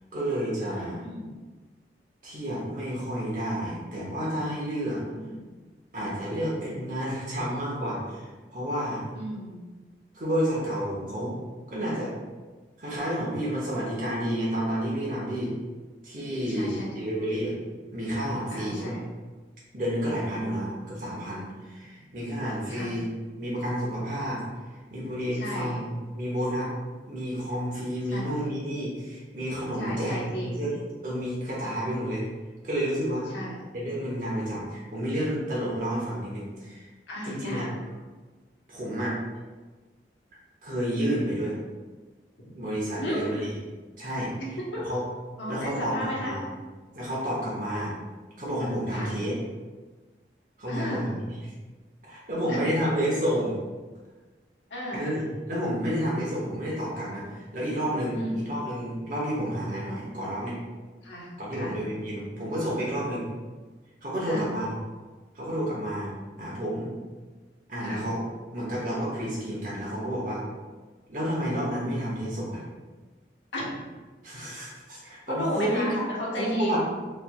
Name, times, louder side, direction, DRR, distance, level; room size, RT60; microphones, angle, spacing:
voice 1, 0.1-1.0 2.2-5.0 5.9-9.0 10.1-11.4 11.7-12.1 12.8-15.5 16.0-17.6 17.9-19.0 19.7-23.1 23.4-24.4 24.9-26.7 27.1-30.7 31.0-32.3 32.6-33.3 33.7-36.8 37.2-37.7 38.7-39.2 40.6-41.5 42.6-43.6 44.0-44.3 44.8-45.0 45.5-46.4 46.9-47.9 48.4-49.3 50.6-51.2 52.0-53.6 54.9-55.2 55.5-60.6 61.4-63.3 64.0-64.8 65.3-66.9 67.7-68.2 68.5-70.4 71.1-72.6 74.2-76.0 76.4-76.8, equal, 45° right, -6 dB, 0.8 m, -30 dB
voice 2, 0.7-1.3 5.0-5.4 9.1-9.6 16.5-17.1 18.5-19.0 22.7-23.0 25.3-25.8 28.1-28.5 29.8-30.7 33.3-33.6 37.1-37.7 42.5-42.6 43.0-43.2 44.7-44.8 45.4-46.3 48.9-49.1 50.7-51.1 52.5-52.6 54.7-55.1 58.1-58.5 61.0-61.8 64.2-64.4 67.8-68.1 73.5-73.7 75.3-76.7, equal, 90° left, -4 dB, 1.0 m, -34 dB
4.3 x 3.2 x 2.3 m, 1.3 s
head